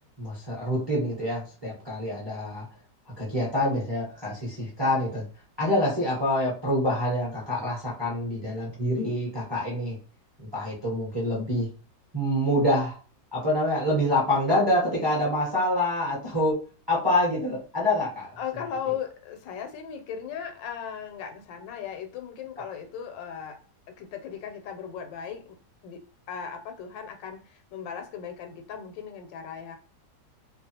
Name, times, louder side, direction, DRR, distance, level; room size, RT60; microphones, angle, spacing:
voice 1, 0.2-2.6 3.2-5.2 5.6-10.0 10.5-11.7 12.1-12.9 13.3-16.6 16.9-18.4, left 1 dB, 25° right, -5 dB, 0.6 m, -26 dB
voice 2, 18.4-23.6 23.9-25.6 25.8-26.0 26.3-29.8, left 8 dB, 85° left, 6 dB, 1.3 m, -37 dB
2.9 x 2.2 x 2.8 m, 0.37 s
omnidirectional pair, 1.9 m